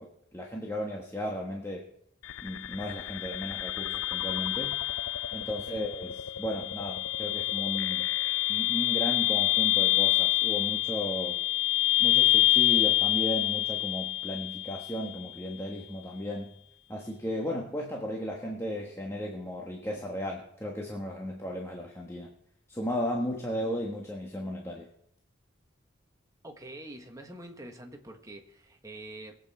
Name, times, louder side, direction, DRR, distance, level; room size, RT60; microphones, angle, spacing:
voice 1, 0.0-1.8 2.4-4.8 5.3-8.1 8.5-11.4 12.0-16.5 16.9-22.3 22.7-24.9, equal, 15° left, -1 dB, 1.3 m, -35 dB
sound 1, 2.2-15.2, left 16 dB, 85° left, 0.4 m, -27 dB
voice 2, 5.5-5.8 26.4-29.4, right 1 dB, 15° right, 3 dB, 1.4 m, -46 dB
20.5 x 8.2 x 4.3 m, 0.70 s
head